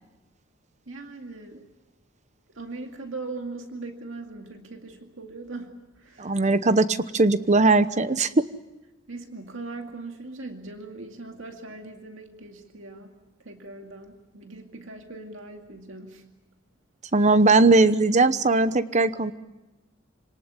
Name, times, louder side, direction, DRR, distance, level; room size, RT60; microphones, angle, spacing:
voice 1, 0.9-1.6 2.6-6.4 9.1-13.1 13.4-16.2, right 3 dB, 75° right, 4 dB, 2.3 m, -40 dB
voice 2, 6.2-8.3 17.1-19.3, right 3 dB, 35° right, 13 dB, 1.0 m, -19 dB
27.5 x 19.0 x 9.7 m, 1.0 s
head